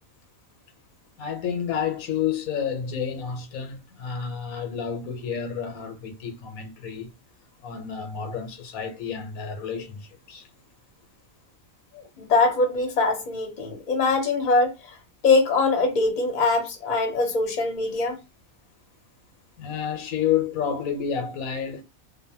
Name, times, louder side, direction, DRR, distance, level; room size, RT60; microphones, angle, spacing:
voice 1, 1.2-7.1 7.6-10.5 19.6-21.8, left 8 dB, 80° left, 1.1 m, -30 dB
voice 2, 11.9-15.0 15.2-18.2, left 3 dB, 40° left, 0.9 m, -23 dB
2.8 x 2.1 x 2.7 m
omnidirectional pair, 1.5 m